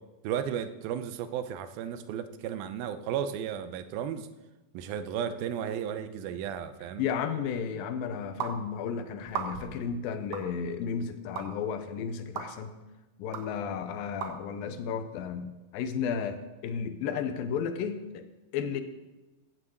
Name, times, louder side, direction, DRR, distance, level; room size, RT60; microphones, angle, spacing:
voice 1, 0.2-4.3 4.7-7.1, right 9 dB, 90° right, 11 dB, 2.6 m, -34 dB
voice 2, 7.0-12.7 13.2-18.3 18.5-18.8, left 7 dB, 85° left, 9 dB, 2.6 m, -33 dB
sound 1, 8.4-8.6 9.3-9.8 10.3-10.5 11.4-11.5 12.4-12.5 13.3-13.4 14.2-14.3, right 7 dB, 65° right, 1.7 m, -34 dB
15.0 x 6.2 x 7.9 m, 1.1 s
omnidirectional pair, 4.1 m